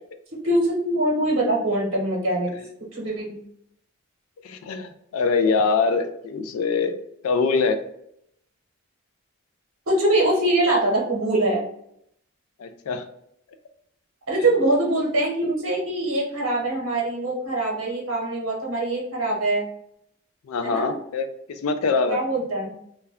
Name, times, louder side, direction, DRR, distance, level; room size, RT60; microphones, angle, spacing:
voice 1, 0.4-2.5 2.9-3.4 9.9-11.6 14.3-19.6 20.6-21.0 22.1-22.8, right 1 dB, 65° right, -3 dB, 0.8 m, -23 dB
voice 2, 4.4-7.0 7.2-7.8 12.6-13.0 20.5-21.3 21.6-22.2, left 4 dB, 80° left, 9 dB, 0.4 m, -23 dB
2.2 x 2.1 x 3.5 m, 0.73 s
head